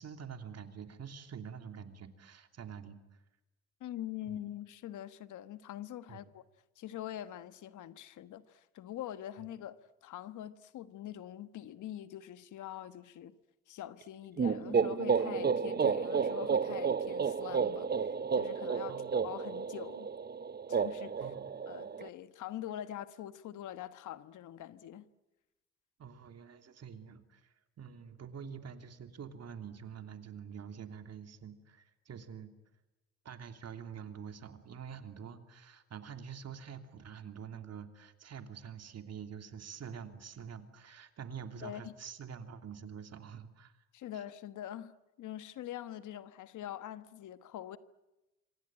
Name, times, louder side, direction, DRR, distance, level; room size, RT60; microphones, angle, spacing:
voice 1, 0.0-3.0 4.2-4.4 6.1-6.2 18.8-19.1 21.2-21.5 26.0-32.5 33.2-43.8 44.1-44.2, right 7 dB, 55° right, 3.0 m, -46 dB
voice 2, 3.8-6.4 6.8-13.4 13.7-20.1 20.7-21.3 21.7-25.0 41.6-41.9 43.9-44.9 45.2-47.8, left 12 dB, 80° left, 1.4 m, -44 dB
sound 1, 14.4-22.1, right 6 dB, 35° right, 0.9 m, -32 dB
26.0 x 25.5 x 8.9 m
cardioid pair, 90°, 30 cm